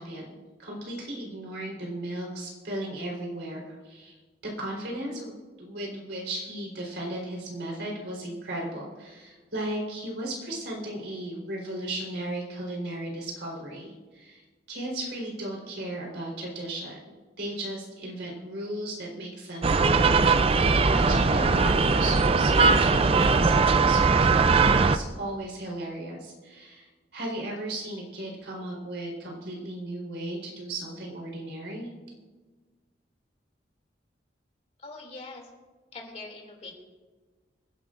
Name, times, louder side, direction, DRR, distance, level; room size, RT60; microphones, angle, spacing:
voice 1, 0.0-4.2 4.4-5.3 5.6-14.4 14.7-31.9, right 1 dB, 75° right, -1 dB, 4.0 m, -36 dB
sound 1, 19.6-25.0, right 4 dB, 35° right, 0.4 m, -20 dB
voice 2, 34.8-35.5 35.9-36.7, left 3 dB, 40° left, 1 dB, 2.7 m, -42 dB
26.0 x 11.0 x 2.6 m, 1.4 s
head